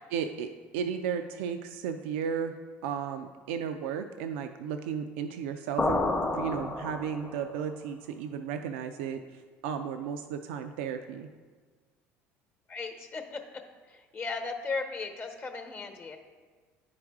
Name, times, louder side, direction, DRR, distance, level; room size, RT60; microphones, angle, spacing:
voice 1, 0.1-2.5 2.8-11.3, right 7 dB, 85° right, 7 dB, 0.4 m, -34 dB
sound 1, 5.8-7.5, left 2 dB, 20° left, 0.8 m, -30 dB
voice 2, 12.7-16.2, left 4 dB, 40° left, 4 dB, 1.0 m, -37 dB
9.5 x 4.9 x 3.5 m, 1.5 s
supercardioid pair, 90°, 6 cm